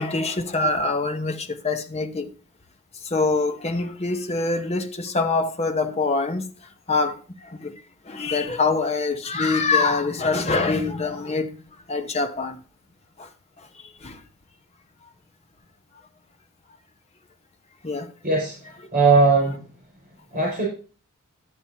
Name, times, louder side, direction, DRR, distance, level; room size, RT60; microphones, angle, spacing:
voice 1, 0.0-2.3 3.1-6.4 6.9-7.1 7.6-7.7 8.1-11.5 11.9-12.6 14.0-14.1 17.8-18.1, left 3 dB, 30° left, 0.8 m, -24 dB
voice 2, 18.2-19.7 20.3-20.7, right 3 dB, 40° right, 5.6 m, -20 dB
12.5 x 8.7 x 2.8 m
head